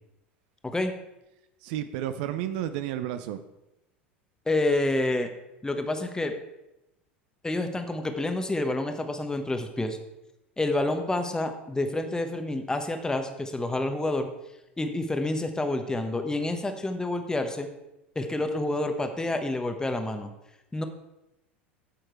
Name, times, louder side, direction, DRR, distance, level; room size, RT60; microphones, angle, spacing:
voice 1, 0.6-0.9 4.5-5.3 5.6-6.3 7.4-10.0 10.6-14.3 14.8-17.7 18.1-20.3 20.7-20.8, left 2 dB, 10° left, 7 dB, 1.1 m, -28 dB
voice 2, 1.6-3.4, right 11 dB, 60° right, 10 dB, 0.6 m, -31 dB
9.3 x 6.5 x 4.5 m, 0.91 s
hypercardioid pair, 80°, 6 cm